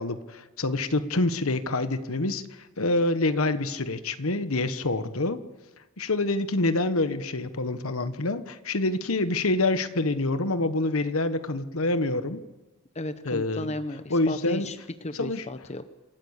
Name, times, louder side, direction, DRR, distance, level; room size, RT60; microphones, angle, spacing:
voice 1, 0.0-5.4 6.0-12.4 13.2-13.7 14.1-14.7 15.1-15.4, left 2 dB, 70° left, 11 dB, 1.3 m, -26 dB
voice 2, 12.9-15.8, left 1 dB, 30° left, 10 dB, 0.9 m, -34 dB
27.5 x 13.5 x 8.2 m, 1.2 s
head